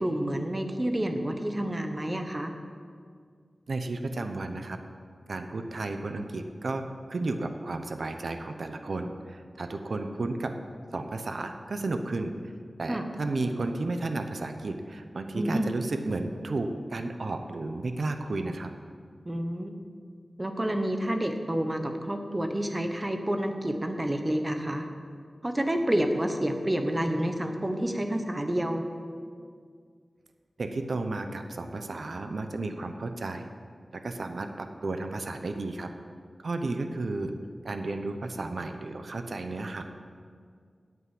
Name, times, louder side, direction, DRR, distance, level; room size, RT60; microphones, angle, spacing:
voice 1, 0.0-2.5 12.9-13.0 15.3-15.7 19.2-19.7 20.4-24.9 25.4-28.8 36.6-36.7, right 1 dB, 20° right, 5 dB, 1.1 m, -29 dB
voice 2, 3.7-4.8 5.3-6.8 7.1-10.5 10.9-12.3 12.8-18.7 30.6-33.5 33.9-35.9 36.4-37.3 37.6-39.8, right 2 dB, 70° right, 6 dB, 0.8 m, -33 dB
9.3 x 8.4 x 7.7 m, 2.1 s
wide cardioid pair, 80°, 0 cm